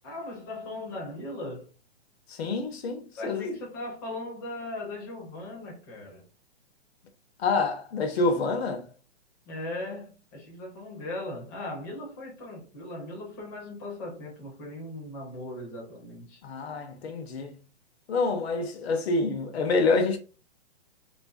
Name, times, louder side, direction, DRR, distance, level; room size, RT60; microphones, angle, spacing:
voice 1, 0.0-1.7 3.2-6.2 9.5-16.4, left 2 dB, 20° left, 0.5 m, -38 dB
voice 2, 2.3-3.6 7.4-8.9 16.4-17.6 18.1-20.2, left 3 dB, 65° left, 0.7 m, -27 dB
2.4 x 2.2 x 2.3 m
hypercardioid pair, 155°, 35 cm